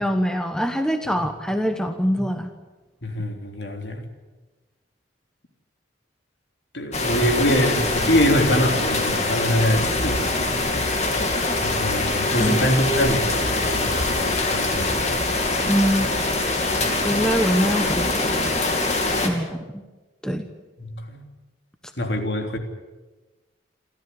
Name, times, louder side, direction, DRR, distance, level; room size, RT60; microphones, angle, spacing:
voice 1, 0.0-2.5 12.4-12.7 15.7-16.1 17.0-18.5 19.2-19.8 20.2-20.5, equal, 5° left, 6 dB, 1.2 m, -23 dB
voice 2, 3.0-4.0 6.7-10.6 11.6-15.2 16.8-16.9 20.8-21.2 22.0-22.6, equal, 60° left, 4 dB, 3.3 m, -24 dB
sound 1, 6.9-19.3, left 2 dB, 35° left, 2.8 m, -23 dB
28.0 x 13.5 x 9.8 m, 1.2 s
head